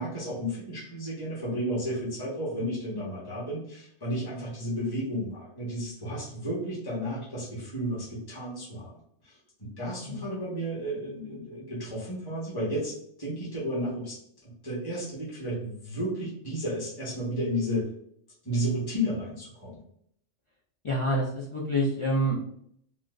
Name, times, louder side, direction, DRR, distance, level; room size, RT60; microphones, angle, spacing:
voice 1, 0.0-8.9 9.2-14.2 14.4-17.9 18.4-19.8, equal, 20° left, -7 dB, 1.1 m, -32 dB
voice 2, 20.8-22.4, equal, 45° left, -4 dB, 0.4 m, -27 dB
3.8 x 2.3 x 2.4 m, 0.68 s
omnidirectional pair, 1.3 m